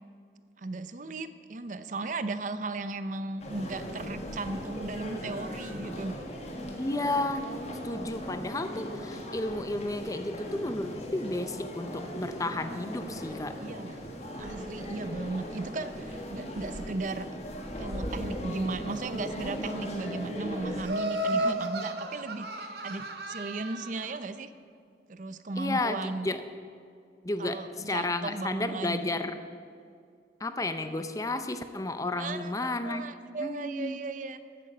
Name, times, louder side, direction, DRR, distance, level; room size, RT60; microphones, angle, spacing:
voice 1, 0.6-6.2 13.6-14.1 14.4-17.3 17.8-24.5 25.1-26.3 27.4-29.1 32.2-34.4, right 3 dB, 45° right, 12 dB, 0.6 m, -36 dB
sound 1, 3.4-20.8, equal, 40° left, 1.7 m, -38 dB
voice 2, 6.8-7.5 7.8-13.6 21.3-21.6 25.6-26.4 27.2-29.4 30.4-33.0 33.4-34.0, left 2 dB, 20° left, 10 dB, 0.5 m, -32 dB
Laughter, 20.8-24.1, right 1 dB, 65° right, 1.1 m, -33 dB
14.5 x 8.8 x 6.7 m, 2.2 s
head